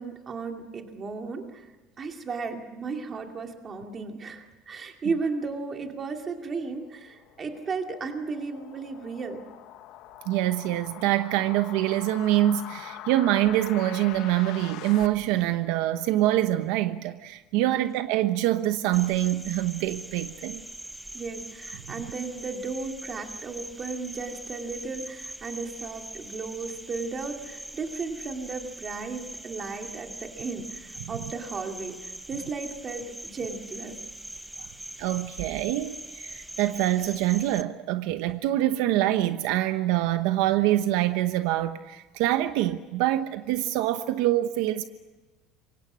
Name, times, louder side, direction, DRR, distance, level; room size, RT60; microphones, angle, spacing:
voice 1, 0.0-1.7 2.0-9.5 17.6-17.8 21.1-34.0, right 4 dB, 20° right, 2.5 m, -35 dB
sound 1, 6.4-15.1, left 13 dB, 55° left, 1.2 m, -43 dB
voice 2, 10.3-20.6 35.0-44.8, right 14 dB, 70° right, 1.0 m, -25 dB
Cricket, 18.9-37.6, right 1 dB, 5° right, 0.7 m, -42 dB
27.5 x 24.0 x 6.3 m
cardioid pair, 180°, 0 cm